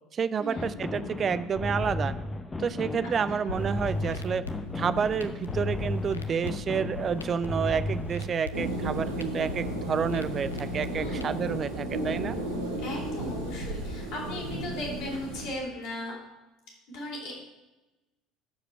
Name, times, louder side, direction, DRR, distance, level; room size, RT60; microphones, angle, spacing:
voice 1, 0.1-2.1 2.6-4.4 4.7-12.4, right 6 dB, 35° right, 14 dB, 0.4 m, -29 dB
sound 1, 0.6-8.4, left 2 dB, 15° left, 0.8 m, -34 dB
sound 2, 3.5-11.5, left 4 dB, 80° left, 0.6 m, -41 dB
sound 3, 8.5-15.5, right 1 dB, 75° right, 1.8 m, -33 dB
voice 2, 10.9-11.4 12.8-16.1 16.9-17.4, left 1 dB, 55° left, -3 dB, 3.7 m, -37 dB
14.0 x 5.0 x 4.6 m, 1.0 s
figure-of-eight pair, 65°, 0 cm